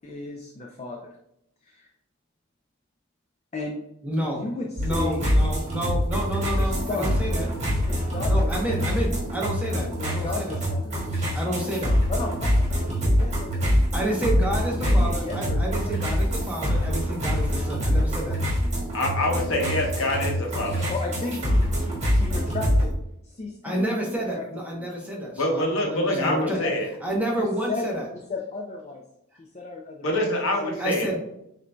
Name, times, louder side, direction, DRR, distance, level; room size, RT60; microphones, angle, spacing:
voice 1, 0.0-1.1 1.6-1.9 3.5-3.9 4.2-5.3 6.5-7.5 7.8-8.9 10.0-10.9 12.1-14.0 14.7-16.1 20.0-20.4 20.6-22.9 23.2-24.4 24.7-24.9 26.1-26.8 27.4-27.9 28.3-29.0 29.4-30.2 30.6-31.2, left 3 dB, 30° left, 1 dB, 0.4 m, -35 dB
voice 2, 4.0-4.4 4.8-7.5 8.2-10.6 11.3-12.0 13.9-18.4 23.6-26.6 27.0-28.1 30.8-31.2, right 1 dB, 5° right, -2 dB, 0.8 m, -29 dB
sound 1, 4.8-22.9, equal, 35° right, 1.5 m, -25 dB
voice 3, 18.9-20.9 25.4-26.9 30.0-31.1, left 1 dB, 65° left, 0 dB, 0.9 m, -25 dB
7.2 x 2.6 x 2.2 m, 0.81 s
head